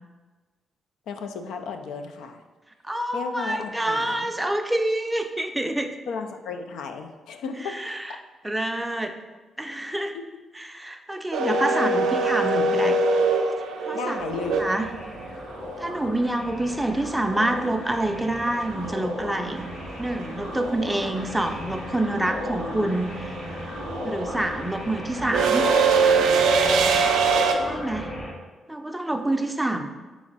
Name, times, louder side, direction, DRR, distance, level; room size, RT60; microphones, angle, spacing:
voice 1, 1.1-2.4 3.1-4.3 6.1-7.9 10.1-10.2 11.4-11.6 13.9-14.6 29.1-29.2, left 5 dB, 85° left, 6 dB, 0.3 m, -34 dB
voice 2, 2.8-5.9 7.6-8.1 8.4-9.1 9.6-10.2 10.6-13.0 13.8-14.2 14.6-14.8 15.8-19.7 20.0-23.4 24.0-25.7 27.6-28.1 28.7-29.9, right 1 dB, 10° right, 5 dB, 0.4 m, -27 dB
sound 1, 11.3-15.4 17.8-17.9 19.2-19.5 19.8-27.5, right 4 dB, 90° right, 0.3 m, -22 dB
sound 2, 14.2-28.3, left 1 dB, 55° left, 1.2 m, -35 dB
3.5 x 3.0 x 3.9 m, 1.3 s
cardioid pair, 70°, 0 cm